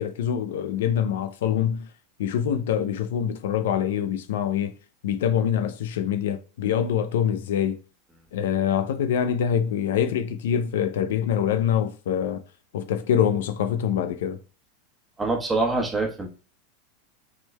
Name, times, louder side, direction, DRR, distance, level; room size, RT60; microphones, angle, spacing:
voice 1, 0.0-1.9 2.2-4.7 5.0-7.8 8.3-12.4 12.7-14.4, left 9 dB, 75° left, 0.5 m, -25 dB
voice 2, 15.2-16.3, right 3 dB, 10° right, 1.2 m, -25 dB
5.9 x 3.7 x 2.2 m
hypercardioid pair, 110°, 0 cm